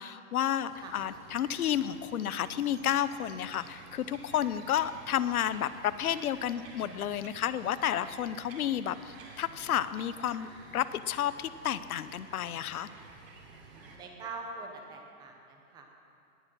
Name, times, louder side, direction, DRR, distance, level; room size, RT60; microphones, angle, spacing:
voice 1, 0.0-12.9, left 10 dB, 75° left, 14 dB, 0.8 m, -31 dB
Bird vocalization bird call bird song, 0.7-14.0, right 3 dB, 45° right, 3.2 m, -52 dB
voice 2, 13.7-15.9, right 3 dB, 10° right, 3 dB, 0.8 m, -44 dB
18.5 x 10.5 x 6.1 m, 2.6 s
hypercardioid pair, 160°, 44 cm